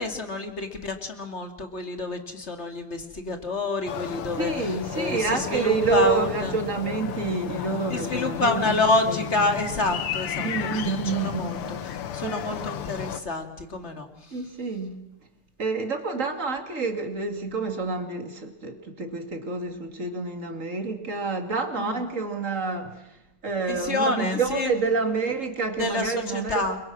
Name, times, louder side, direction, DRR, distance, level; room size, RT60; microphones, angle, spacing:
voice 1, 0.0-6.6 7.9-14.4 21.8-22.0 23.7-24.7 25.8-26.8, left 2 dB, 30° left, 2.4 m, -28 dB
sound 1, 3.9-13.2, left 9 dB, 85° left, 2.0 m, -34 dB
voice 2, 4.4-8.7 9.1-9.2 10.4-11.6 12.2-12.7 14.3-15.0 15.6-23.1 23.4-26.6, right 4 dB, 35° right, 2.7 m, -28 dB
29.5 x 23.0 x 6.2 m
omnidirectional pair, 2.4 m